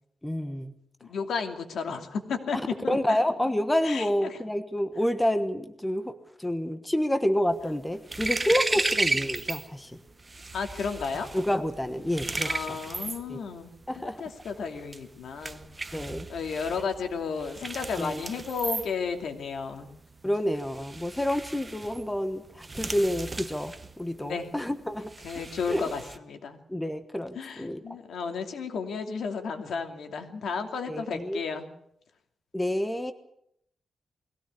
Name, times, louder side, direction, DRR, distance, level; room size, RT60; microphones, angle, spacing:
voice 1, 0.2-0.7 2.5-2.6 2.9-6.1 6.4-9.9 11.3-12.8 13.3-13.4 13.9-14.2 15.9-16.3 18.0-18.2 20.2-25.9 26.7-27.8 30.9-31.4 32.5-33.1, left 1 dB, 10° left, 9 dB, 1.2 m, -29 dB
voice 2, 1.0-3.2 3.8-4.4 10.5-11.3 12.4-15.6 16.3-19.9 24.2-24.5 25.2-26.6 27.3-31.7, left 5 dB, 85° left, 5 dB, 2.7 m, -33 dB
sound 1, 7.5-9.7 10.0-26.2, right 2 dB, 20° right, 1.0 m, -35 dB
21.5 x 16.5 x 8.4 m, 0.74 s
wide cardioid pair, 165°, 0 cm